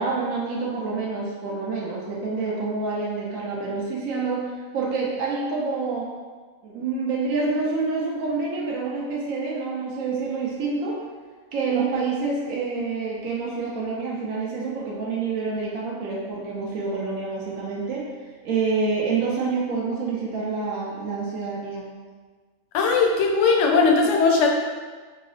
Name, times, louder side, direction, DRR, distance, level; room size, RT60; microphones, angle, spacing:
voice 1, 0.0-6.1 6.6-11.0 11.5-18.1 18.4-21.8, right 4 dB, 70° right, -4 dB, 1.0 m, -27 dB
voice 2, 22.7-24.5, left 4 dB, 65° left, 1 dB, 0.8 m, -19 dB
3.7 x 2.0 x 3.9 m, 1.5 s
omnidirectional pair, 1.6 m